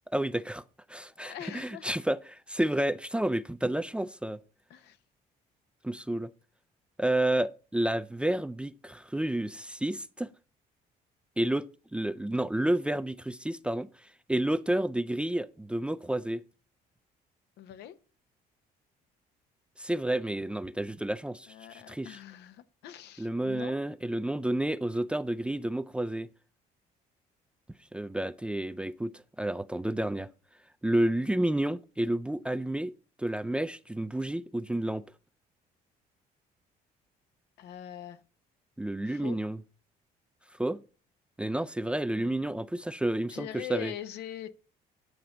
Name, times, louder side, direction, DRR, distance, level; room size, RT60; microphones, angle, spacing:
voice 1, 0.1-0.6 0.9-4.4 5.8-6.3 7.0-10.3 11.4-11.7 11.9-13.9 14.3-16.4 19.8-22.2 23.2-26.3 27.9-30.3 30.8-32.9 33.2-35.0 38.8-39.6 40.6-40.8 41.4-43.9, right 1 dB, 5° right, 0.4 m, -30 dB
voice 2, 1.2-2.0 4.7-5.0 17.6-18.0 21.5-23.8 37.6-38.2 39.0-39.4 43.3-44.5, left 11 dB, 80° left, 0.9 m, -42 dB
9.3 x 3.9 x 7.0 m
cardioid pair, 110°, 17 cm